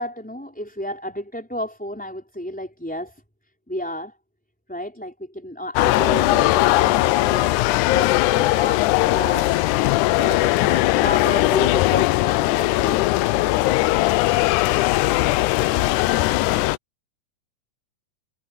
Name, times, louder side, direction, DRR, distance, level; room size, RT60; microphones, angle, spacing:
voice 1, 0.0-3.2 3.7-4.2 4.7-9.5 10.2-13.0, equal, ahead, 4.6 m, -32 dB
sound 1, 5.8-16.8, left 18 dB, 85° left, 1.8 m, -19 dB
omnidirectional pair, 4.1 m